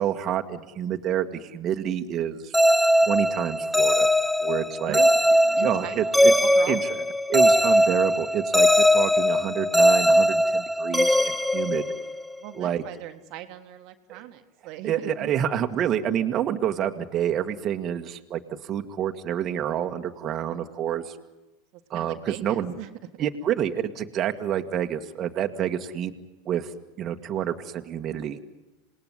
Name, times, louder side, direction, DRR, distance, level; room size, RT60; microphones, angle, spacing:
voice 1, 0.0-2.5 3.0-4.1 4.4-5.0 5.6-6.3 6.7-7.0 7.3-11.8 12.5-12.8 14.1-14.2 14.8-21.2 21.9-22.7 23.2-26.1 26.4-26.7 27.0-28.4, right 10 dB, 40° right, 5 dB, 1.8 m, -28 dB
sound 1, 2.5-12.3, equal, ahead, 0.9 m, -20 dB
voice 2, 4.9-5.2 5.6-6.8 12.4-15.3 21.7-22.9, right 13 dB, 55° right, 7 dB, 1.7 m, -39 dB
27.5 x 19.0 x 9.9 m, 1.1 s
hypercardioid pair, 95°, 0 cm